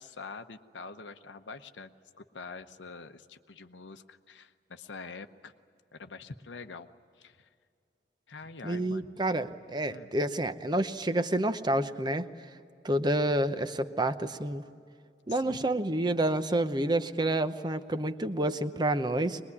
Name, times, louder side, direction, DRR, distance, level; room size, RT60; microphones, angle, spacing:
voice 1, 0.0-5.5 5.9-6.9 7.2-7.5 8.3-9.1 9.9-10.1 15.3-15.6, left 4 dB, 85° left, 8 dB, 0.9 m, -45 dB
voice 2, 8.6-12.3 12.8-14.6 15.3-19.4, right 1 dB, 25° right, 10 dB, 0.8 m, -29 dB
23.5 x 21.0 x 9.8 m, 2.3 s
head